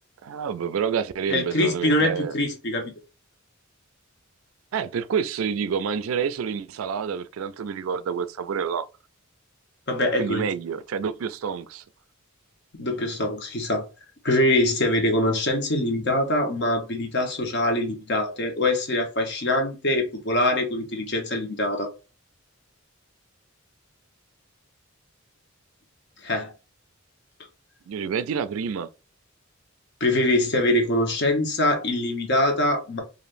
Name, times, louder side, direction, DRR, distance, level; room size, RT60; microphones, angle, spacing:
voice 1, 0.2-2.3 4.7-8.9 10.2-11.8 27.9-28.9, right 6 dB, 75° right, 0.4 m, -28 dB
voice 2, 1.3-2.9 9.9-10.5 12.7-13.9 14.2-21.9 26.2-26.5 30.0-33.0, left 1 dB, 55° left, 1.1 m, -23 dB
4.9 x 2.6 x 2.6 m
head